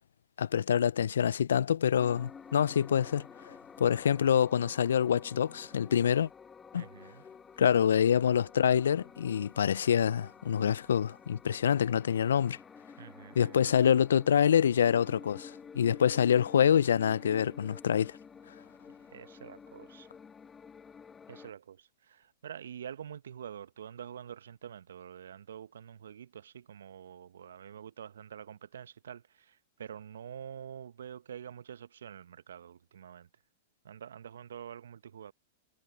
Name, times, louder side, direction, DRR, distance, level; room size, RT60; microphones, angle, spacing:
voice 1, 0.4-6.3 6.7-6.9 7.6-12.6 13.4-18.2, left 8 dB, 75° left, 0.5 m, -26 dB
sound 1, 2.0-21.5, left 6 dB, 20° left, 1.4 m, -51 dB
voice 2, 6.7-7.2 13.0-13.6 19.1-20.1 21.3-33.3 33.8-35.3, right 9 dB, 75° right, 0.9 m, -46 dB
hypercardioid pair, 105°, 0 cm